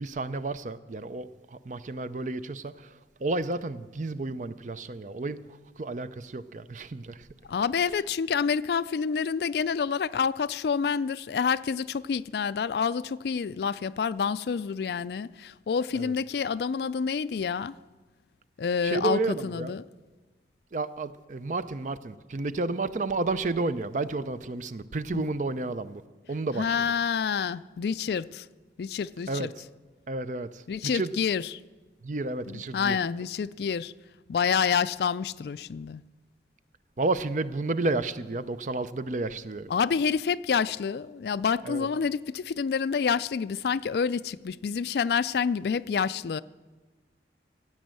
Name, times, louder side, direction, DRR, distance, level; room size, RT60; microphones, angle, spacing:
voice 1, 0.0-2.9 3.2-5.5 5.8-7.3 15.9-16.1 18.8-19.7 20.7-26.0 26.3-26.9 29.3-29.5 30.1-31.1 32.0-33.0 37.0-39.7 41.7-41.9, right 3 dB, 45° right, 0.5 m, -31 dB
voice 2, 7.5-17.7 18.6-19.8 25.1-25.3 26.6-28.5 28.8-29.5 30.7-31.5 32.5-33.9 34.3-36.0 39.7-46.4, left 6 dB, 65° left, 0.3 m, -28 dB
15.5 x 8.9 x 7.6 m
head